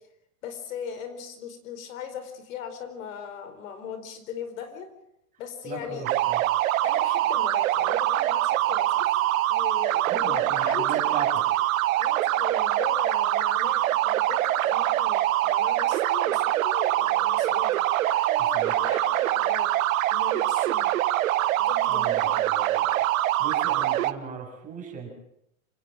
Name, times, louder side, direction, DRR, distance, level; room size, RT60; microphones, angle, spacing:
voice 1, 0.4-4.9 5.4-6.1 6.8-9.1 9.5-11.3 12.0-17.7 18.0-19.7 20.1-20.9 21.6-22.5, left 7 dB, 70° left, 10 dB, 4.6 m, -38 dB
voice 2, 5.6-6.4 10.1-11.4 18.5-18.7 21.9-23.0 23.4-25.1, right 5 dB, 20° right, 1 dB, 7.3 m, -37 dB
sound 1, 6.1-24.1, right 15 dB, 70° right, 1.4 m, -24 dB
26.5 x 17.5 x 7.5 m, 0.76 s
supercardioid pair, 150°, 42 cm